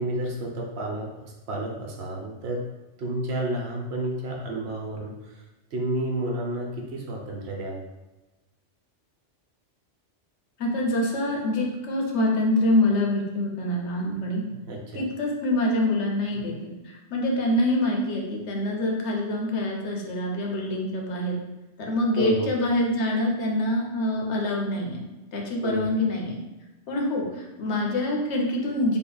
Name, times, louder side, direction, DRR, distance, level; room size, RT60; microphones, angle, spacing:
voice 1, 0.0-2.6 3.0-5.4 5.7-7.8 14.5-15.0 16.3-16.5 22.2-22.5 25.6-25.9, right 1 dB, 65° right, -1 dB, 0.9 m, -31 dB
voice 2, 10.6-14.4 14.9-21.4 21.8-25.0 25.3-26.4 26.9-29.0, left 1 dB, 70° left, 0 dB, 1.0 m, -25 dB
3.6 x 2.1 x 3.8 m, 1.1 s
omnidirectional pair, 1.2 m